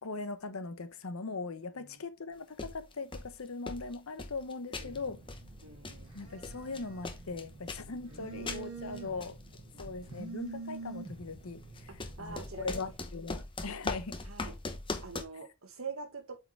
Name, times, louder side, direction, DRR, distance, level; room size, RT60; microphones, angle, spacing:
voice 1, 0.0-5.2 6.1-9.4 9.8-14.2, left 3 dB, 85° left, 0.9 m, -40 dB
sound 1, 2.6-3.4 3.7-5.0 5.3-8.2 8.5-8.7 9.0-10.0 11.8-15.2, left 3 dB, 25° left, 0.9 m, -40 dB
voice 2, 4.8-5.1 5.6-6.1 8.0-8.3 9.7-10.4 12.2-12.8 14.3-14.5 15.0-16.4, right 4 dB, 75° right, 1.6 m, -45 dB
Telephone, 4.9-12.9, right 3 dB, 25° right, 3.1 m, -47 dB
8.1 x 4.7 x 3.3 m
head